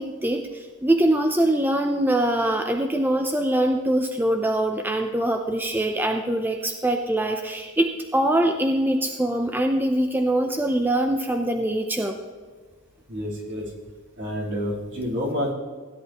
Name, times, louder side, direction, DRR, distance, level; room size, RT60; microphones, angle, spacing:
voice 1, 0.0-12.2, right 1 dB, 10° right, 5 dB, 0.5 m, -23 dB
voice 2, 13.1-13.7 14.2-15.5, equal, 60° right, -4 dB, 3.6 m, -28 dB
16.5 x 10.5 x 3.0 m, 1.5 s
head